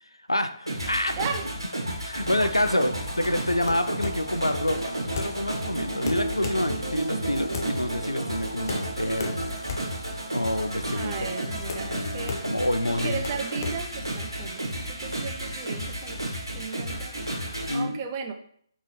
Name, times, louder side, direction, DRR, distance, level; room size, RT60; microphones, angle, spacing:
voice 1, 0.3-1.2 2.0-9.6 10.3-11.4 11.8-13.2 17.7-18.0, left 1 dB, 85° left, 9 dB, 0.4 m, -28 dB
sound 1, 0.7-17.8, right 1 dB, 80° right, 1.4 m, -32 dB
voice 2, 1.2-1.5 2.7-2.8 10.9-12.4 12.9-18.3, right 6 dB, 25° right, 5 dB, 0.4 m, -36 dB
sound 2, 2.1-17.6, right 1 dB, 55° right, 0.9 m, -48 dB
sound 3, 2.6-14.7, left 4 dB, 40° left, 0.6 m, -37 dB
4.0 x 3.6 x 3.0 m, 0.63 s
figure-of-eight pair, 140°, 2 cm